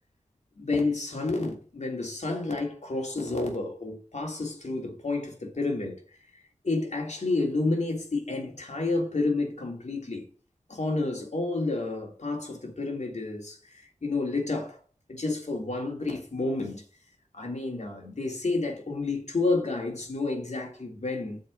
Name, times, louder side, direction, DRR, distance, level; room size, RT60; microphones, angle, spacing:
voice 1, 0.6-6.0 6.6-10.3 10.7-14.8 15.1-16.8 17.3-21.4, left 3 dB, 60° left, 3.0 m, -30 dB
7.1 x 5.0 x 6.5 m
wide cardioid pair, 55°, 13 cm